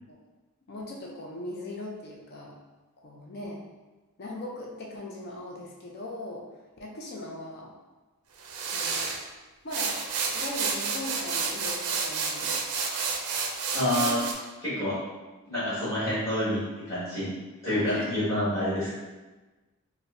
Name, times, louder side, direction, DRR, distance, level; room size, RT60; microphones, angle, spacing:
voice 1, 0.7-2.6 3.0-3.6 4.2-6.5 6.8-7.8 8.6-9.1 9.6-10.0 10.3-12.6 13.8-14.1 17.7-18.2, left 1 dB, 45° left, -2 dB, 0.4 m, -39 dB
sound 1, 8.4-9.2 9.7-14.3, right 5 dB, 85° right, 0.4 m, -30 dB
voice 2, 13.7-14.2 14.6-15.0 15.5-17.3 17.6-18.9, left 1 dB, 15° left, -11 dB, 1.3 m, -28 dB
4.1 x 2.1 x 2.5 m, 1.2 s
head